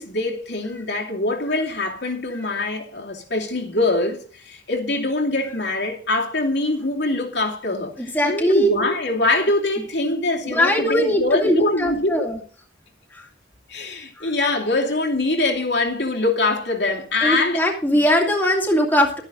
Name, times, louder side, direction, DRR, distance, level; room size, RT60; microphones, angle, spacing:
voice 1, 0.0-12.3 13.7-17.6 17.9-18.0, left 2 dB, 65° left, 2.6 m, -23 dB
voice 2, 8.0-8.7 10.4-12.4 13.1-13.3 14.2-14.3 17.2-19.2, equal, 10° left, 2.2 m, -20 dB
13.0 x 9.8 x 4.0 m
head